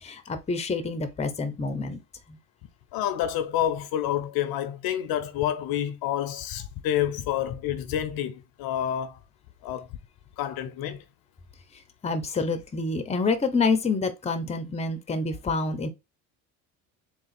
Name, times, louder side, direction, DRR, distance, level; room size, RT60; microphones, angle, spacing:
voice 1, 0.0-2.0 2.3-2.4 12.0-15.9, left 4 dB, 15° left, 0.7 m, -27 dB
voice 2, 2.9-9.2 9.6-9.9 10.4-11.0, left 11 dB, 60° left, 0.7 m, -28 dB
3.8 x 2.4 x 4.1 m
supercardioid pair, 90°, 42 cm